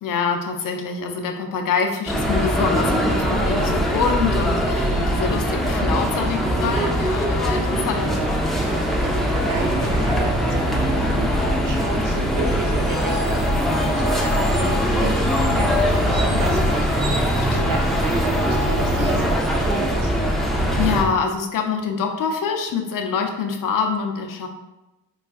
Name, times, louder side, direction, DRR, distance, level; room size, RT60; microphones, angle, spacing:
voice 1, 0.0-8.2 17.4-17.8 20.8-24.5, left 5 dB, 60° left, 4 dB, 0.6 m, -25 dB
sound 1, 2.1-21.0, equal, ahead, 0.7 m, -21 dB
sound 2, 5.6-17.1, equal, 30° right, 1.5 m, -37 dB
voice 2, 8.7-11.3 11.6-16.9 17.3-20.1, right 3 dB, 60° right, 2 dB, 0.7 m, -32 dB
4.7 x 2.3 x 2.3 m, 1.0 s
supercardioid pair, 45°, 36 cm